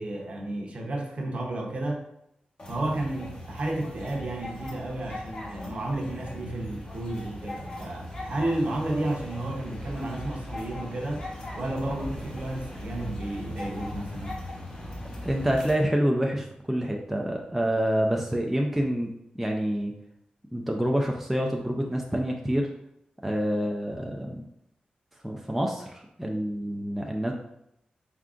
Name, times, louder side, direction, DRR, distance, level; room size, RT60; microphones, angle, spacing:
voice 1, 0.0-2.1 2.7-11.3 11.5-14.4, right 1 dB, 45° right, 0 dB, 0.8 m, -32 dB
sound 1, 2.6-15.7, left 1 dB, 35° left, 0.9 m, -39 dB
voice 2, 15.2-19.9 20.5-22.7 23.2-24.4 25.2-27.3, equal, 5° right, 0 dB, 0.4 m, -27 dB
4.5 x 3.6 x 2.4 m, 0.78 s
wide cardioid pair, 155°, 3 cm